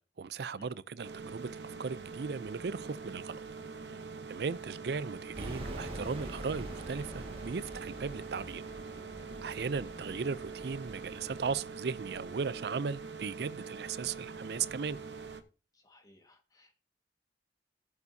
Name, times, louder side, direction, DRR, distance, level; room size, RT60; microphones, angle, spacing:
voice 1, 0.0-3.4 4.3-8.6 9.4-15.0, right 5 dB, 65° right, 0.5 m, -37 dB
sound 1, 1.0-15.4, right 5 dB, 85° right, 0.9 m, -44 dB
sound 2, 5.3-11.6, right 1 dB, 30° right, 1.9 m, -45 dB
voice 2, 9.2-9.5 15.7-16.7, left 1 dB, 20° left, 1.6 m, -61 dB
14.0 x 7.2 x 2.7 m
head